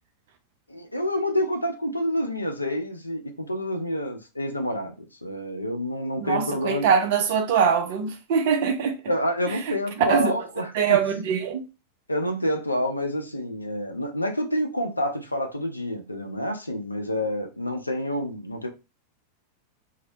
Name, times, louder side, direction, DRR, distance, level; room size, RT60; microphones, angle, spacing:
voice 1, 0.7-4.9 5.2-6.9 9.1-11.0 12.1-18.7, left 1 dB, 85° left, 0.4 m, -28 dB
voice 2, 6.2-9.0 10.0-10.3 10.7-11.6, right 7 dB, 50° right, 0.5 m, -22 dB
2.7 x 2.1 x 2.6 m
figure-of-eight pair, 90°, 0 cm